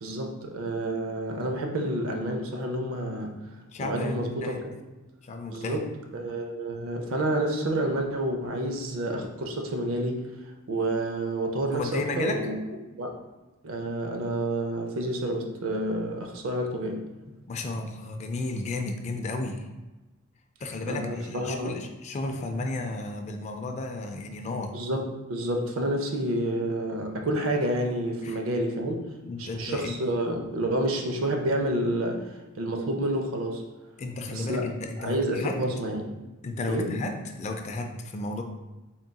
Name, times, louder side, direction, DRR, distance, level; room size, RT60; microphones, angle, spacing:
voice 1, 0.0-3.4 3.8-4.6 5.5-5.9 6.1-10.2 10.7-12.6 13.0-13.1 13.6-17.1 20.9-21.8 24.7-29.0 29.4-32.3 32.6-33.6 34.3-34.6 35.0-36.0 36.7-36.9, right 1 dB, 70° right, 3 dB, 0.6 m, -29 dB
voice 2, 3.7-4.6 5.2-5.8 11.7-12.5 17.3-19.7 20.6-24.8 28.2-28.4 29.2-29.9 34.0-35.6 36.4-38.4, left 2 dB, 35° left, 4 dB, 0.3 m, -33 dB
3.9 x 3.7 x 2.3 m, 1.1 s
head